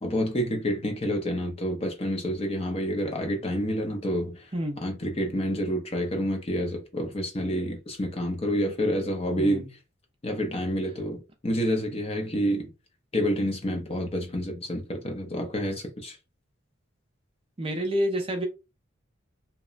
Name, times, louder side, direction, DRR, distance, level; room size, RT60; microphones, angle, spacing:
voice 1, 0.0-4.5 4.8-9.6 10.2-12.7 13.1-16.2, equal, 30° left, 0.5 m, -28 dB
voice 2, 9.4-9.7 17.6-18.5, equal, 25° right, 0.5 m, -28 dB
2.8 x 2.1 x 2.4 m
head